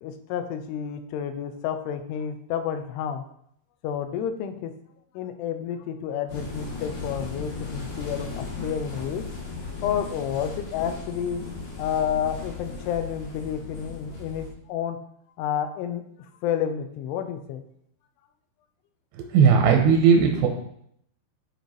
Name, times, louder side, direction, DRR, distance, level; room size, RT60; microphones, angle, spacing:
voice 1, 0.0-3.2 3.8-4.7 5.1-9.2 9.8-11.4 11.8-15.0 15.4-17.6, left 8 dB, 80° left, 7 dB, 2.6 m, -30 dB
sound 1, 6.3-14.5, left 4 dB, 65° left, 3.6 m, -36 dB
voice 2, 19.2-20.5, right 6 dB, 80° right, 3 dB, 2.3 m, -17 dB
11.5 x 4.3 x 3.2 m, 0.71 s
omnidirectional pair, 5.0 m